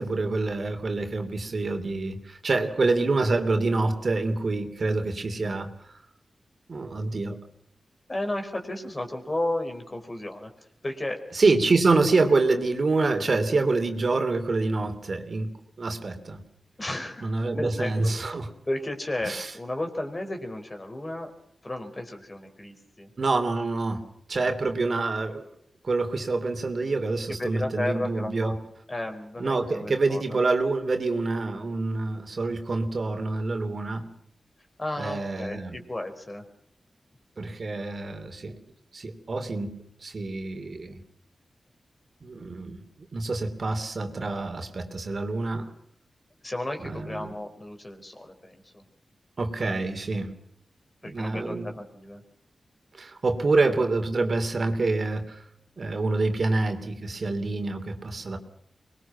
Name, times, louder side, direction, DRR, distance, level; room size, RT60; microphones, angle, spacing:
voice 1, 0.0-5.7 6.7-7.4 11.3-16.4 17.2-18.5 19.2-19.5 23.2-25.5 25.8-28.6 29.4-34.1 35.0-35.8 37.4-38.6 38.9-39.7 40.0-41.0 42.2-42.8 43.1-45.7 46.8-47.3 49.4-50.3 51.0-51.7 52.9-55.4 55.8-58.4, right 3 dB, 55° right, 6 dB, 3.1 m, -26 dB
voice 2, 8.1-11.2 16.8-17.9 18.7-21.3 21.6-23.1 27.4-28.6 28.9-30.4 34.8-36.4 46.4-48.8 51.0-52.2, left 1 dB, 30° left, 5 dB, 4.7 m, -33 dB
24.5 x 21.0 x 6.0 m, 0.71 s
cardioid pair, 65°, 0 cm